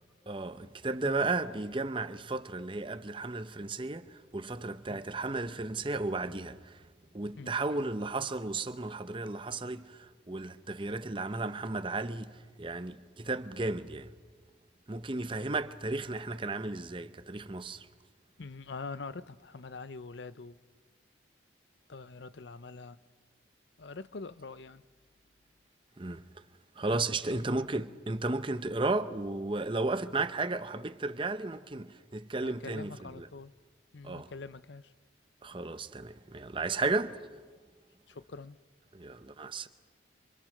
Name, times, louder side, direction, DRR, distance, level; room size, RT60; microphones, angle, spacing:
voice 1, 0.3-6.8 7.1-14.1 14.9-17.9 26.0-26.2 26.8-33.3 34.0-34.3 35.4-37.2 38.9-39.7, right 3 dB, 25° right, 0.8 m, -34 dB
voice 2, 18.4-20.6 21.9-23.0 23.8-24.8 26.9-27.4 32.4-33.5 33.9-34.9 36.8-36.9 38.1-38.6, left 4 dB, 65° left, 0.7 m, -44 dB
27.5 x 26.0 x 6.5 m
head